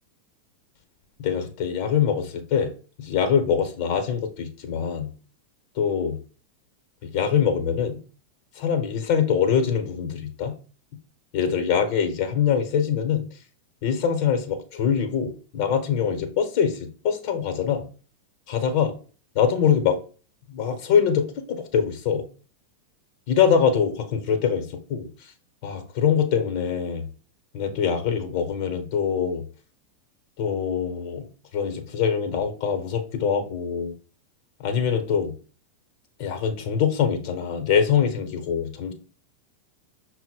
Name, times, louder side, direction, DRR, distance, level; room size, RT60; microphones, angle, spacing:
voice 1, 1.2-2.7 3.0-5.1 5.8-6.2 7.0-8.0 8.6-10.5 11.3-13.3 13.8-17.8 18.5-18.9 19.3-20.0 20.5-22.2 23.3-25.1 25.6-27.1 27.5-29.4 30.4-31.3 31.5-33.9 34.6-35.3 36.2-38.9, left 7 dB, 45° left, 0.9 m, -23 dB
5.7 x 2.1 x 4.3 m
figure-of-eight pair, 90°, 0 cm